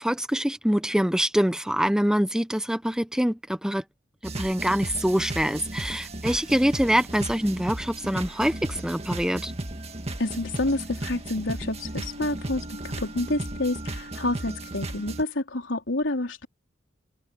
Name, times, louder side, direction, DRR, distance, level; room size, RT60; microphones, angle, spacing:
voice 1, 0.0-3.8 4.2-9.5, equal, 5° right, 0.9 m, -25 dB
sound 1, 4.2-15.2, right 1 dB, 35° right, 1.9 m, -35 dB
voice 2, 10.2-16.5, left 2 dB, 85° left, 3.9 m, -28 dB
head